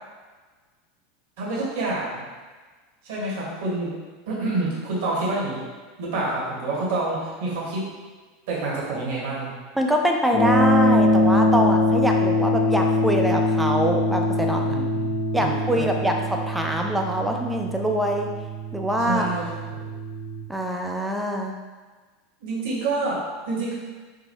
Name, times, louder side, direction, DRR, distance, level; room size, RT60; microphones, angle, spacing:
voice 1, 1.4-2.3 3.0-3.9 4.3-5.6 6.0-7.9 8.5-9.5 14.7-16.0 19.0-19.9 22.4-23.7, right 2 dB, 60° right, -5 dB, 1.2 m, -28 dB
voice 2, 9.8-14.8 15.3-18.3 18.7-19.3 20.5-21.5, equal, 5° right, 2 dB, 0.5 m, -24 dB
sound 1, 10.3-20.4, left 1 dB, 65° left, 0.9 m, -23 dB
5.1 x 2.2 x 2.9 m, 1.4 s
figure-of-eight pair, 80°, 0 cm